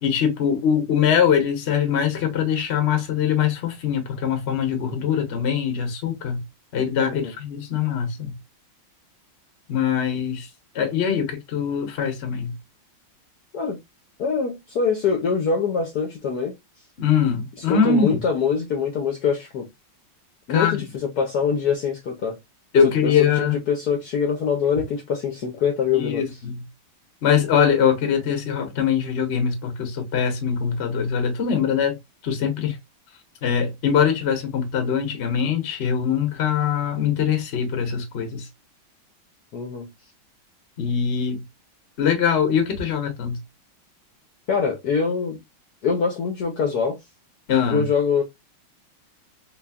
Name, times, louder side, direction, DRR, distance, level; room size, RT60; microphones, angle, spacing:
voice 1, 0.0-6.4 6.7-8.4 9.7-10.5 10.7-12.5 17.0-18.2 20.5-20.8 22.7-23.6 25.9-26.6 27.2-32.0 32.2-32.8 33.4-38.5 40.8-41.4 42.0-43.4 47.5-47.9, left 7 dB, 45° left, 0.9 m, -22 dB
voice 2, 14.2-16.5 17.7-19.7 20.5-22.4 23.0-26.2 39.5-39.9 44.5-45.4 45.8-47.0 47.6-48.2, left 6 dB, 60° left, 1.1 m, -24 dB
4.0 x 3.0 x 2.2 m
omnidirectional pair, 2.3 m